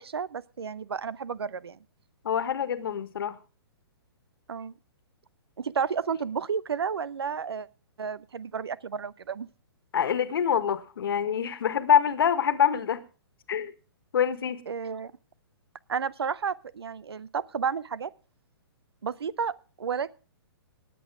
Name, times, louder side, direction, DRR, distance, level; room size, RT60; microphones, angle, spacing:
voice 1, 0.0-1.8 4.5-4.7 5.6-7.7 8.0-9.5 14.7-15.1 15.9-18.1 19.0-20.1, right 6 dB, 75° right, 22 dB, 0.7 m, -32 dB
voice 2, 2.2-3.4 9.9-13.0 13.5-13.7 14.1-14.6, left 8 dB, 65° left, 13 dB, 1.5 m, -25 dB
18.5 x 8.5 x 4.8 m, 0.36 s
hypercardioid pair, 125°, 13 cm